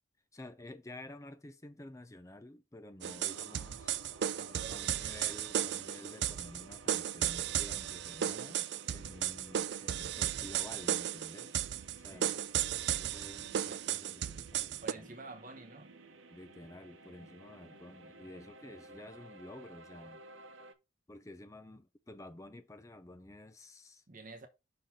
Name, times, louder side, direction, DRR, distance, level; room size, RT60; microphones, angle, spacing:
voice 1, 0.3-4.0 4.7-11.6 12.0-15.1 16.3-20.2 21.1-24.0, left 1 dB, 15° left, 0.5 m, -51 dB
sound 1, 3.0-14.9, right 10 dB, 55° right, 0.4 m, -35 dB
sound 2, 3.3-20.7, right 3 dB, 80° right, 0.9 m, -54 dB
voice 2, 4.4-5.0 12.1-12.3 14.8-16.0 24.1-24.5, right 3 dB, 40° right, 1.1 m, -49 dB
5.9 x 3.9 x 4.9 m
head